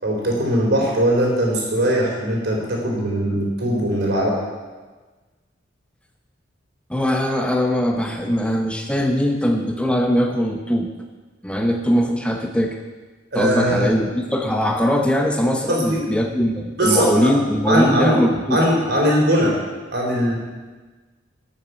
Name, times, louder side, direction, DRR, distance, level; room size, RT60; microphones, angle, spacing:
voice 1, 0.0-4.4 13.3-13.9 15.7-16.1 16.8-17.3 17.7-18.2 18.5-19.6 19.9-20.4, equal, 60° right, -1 dB, 4.0 m, -20 dB
voice 2, 6.9-10.9 11.4-12.8 13.3-18.6, equal, 5° left, 3 dB, 0.8 m, -21 dB
12.5 x 7.4 x 8.2 m, 1.3 s
head